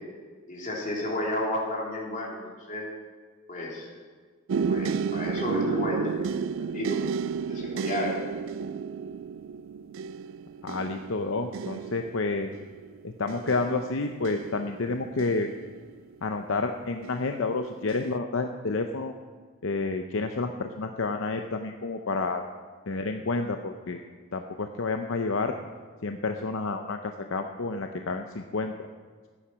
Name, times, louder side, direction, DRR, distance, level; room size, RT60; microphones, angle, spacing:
voice 1, 0.5-2.4 2.7-2.9 3.5-3.9 4.7-6.2 6.7-7.0 7.4-8.2, left 1 dB, 40° left, -3 dB, 3.3 m, -31 dB
sound 1, 4.5-16.4 17.0-17.5 17.9-18.1, right 5 dB, 65° right, 0.3 m, -33 dB
voice 2, 10.6-12.5 13.0-15.5 16.2-19.1 19.6-22.4 22.9-24.0 24.3-25.5 26.0-28.7, left 3 dB, 65° left, 5 dB, 0.7 m, -30 dB
14.5 x 8.8 x 6.2 m, 1.5 s
head